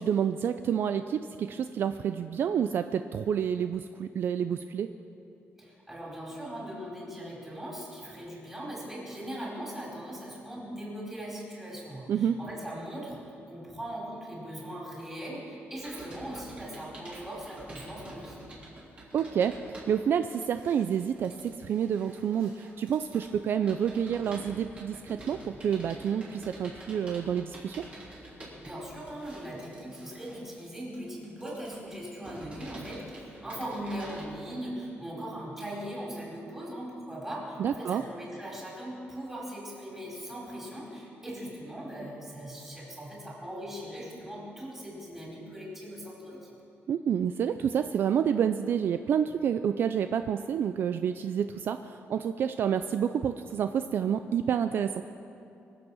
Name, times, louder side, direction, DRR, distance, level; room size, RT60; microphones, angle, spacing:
voice 1, 0.0-4.9 12.1-12.4 19.1-27.8 37.6-38.0 46.9-55.0, right 8 dB, 55° right, 9 dB, 0.4 m, -29 dB
voice 2, 5.6-13.2 13.5-18.4 28.6-46.5, equal, 10° right, -5 dB, 4.5 m, -40 dB
Computer keyboard, 15.8-34.2, right 1 dB, 25° right, 3.4 m, -48 dB
23.5 x 8.0 x 6.3 m, 2.7 s
wide cardioid pair, 165°, 4 cm